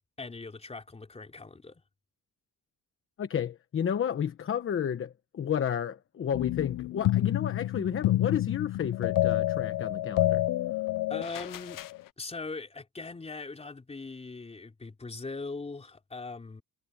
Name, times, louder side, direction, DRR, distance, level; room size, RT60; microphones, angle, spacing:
voice 1, 0.2-1.8 11.1-11.9 12.2-16.6, left 3 dB, 20° left, 4.0 m, -40 dB
voice 2, 3.2-10.4, left 8 dB, 40° left, 1.0 m, -32 dB
sound 1, 6.3-12.0, left 14 dB, 75° left, 0.8 m, -28 dB
cardioid pair, 150°, 33 cm